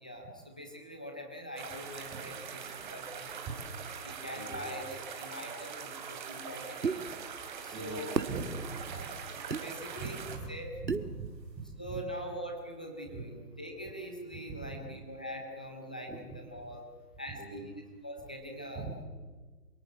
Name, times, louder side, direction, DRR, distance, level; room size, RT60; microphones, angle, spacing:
voice 1, 0.0-3.4 4.0-7.1 7.6-8.2 8.9-9.1 9.6-10.7 11.8-16.8 17.2-18.9, equal, 5° left, 2 dB, 0.7 m, -43 dB
sound 1, 1.6-10.4, right 7 dB, 30° right, 3.9 m, -43 dB
sound 2, 6.8-7.0 8.2-8.4 9.5-9.6 10.9-11.1, right 5 dB, 90° right, 2.1 m, -30 dB
voice 2, 7.7-8.5 8.8-9.0 10.0-10.5 10.8-11.3 11.6-12.0 13.1-13.2 14.7-14.8 17.4-17.7 18.7-19.0, right 4 dB, 10° right, 2 dB, 4.2 m, -41 dB
27.5 x 18.5 x 8.4 m, 1.4 s
figure-of-eight pair, 155°, 49 cm